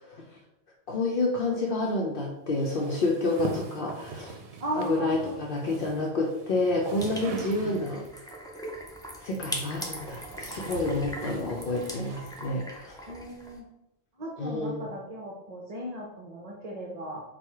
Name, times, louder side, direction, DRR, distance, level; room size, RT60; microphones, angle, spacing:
voice 1, 0.9-4.4 4.8-8.0 9.2-13.0 14.4-14.9, left 2 dB, 65° left, -1 dB, 0.7 m, -29 dB
sound 1, 2.6-8.2 9.2-12.8, right 4 dB, 75° right, 0.8 m, -43 dB
voice 2, 4.6-5.4 13.1-13.6 14.2-17.2, right 1 dB, 40° right, -1 dB, 0.7 m, -36 dB
sound 2, 7.0-13.6, equal, 5° left, 0.5 m, -40 dB
4.5 x 2.3 x 4.6 m, 0.89 s
omnidirectional pair, 1.1 m